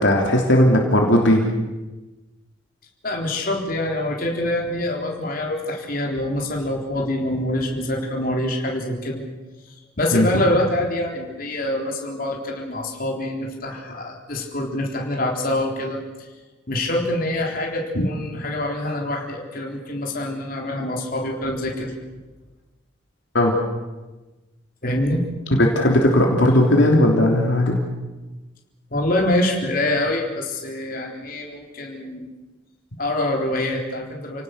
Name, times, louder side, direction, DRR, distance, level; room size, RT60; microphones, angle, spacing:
voice 1, 0.0-1.4 10.1-10.3 17.9-18.0 23.3-23.5 25.7-27.8, left 1 dB, 65° left, 0 dB, 3.3 m, -17 dB
voice 2, 3.0-9.2 10.0-16.0 16.7-21.9 24.8-25.2 28.9-32.3 33.0-34.4, left 1 dB, 45° left, 0 dB, 3.9 m, -25 dB
29.5 x 18.5 x 6.7 m, 1.1 s
head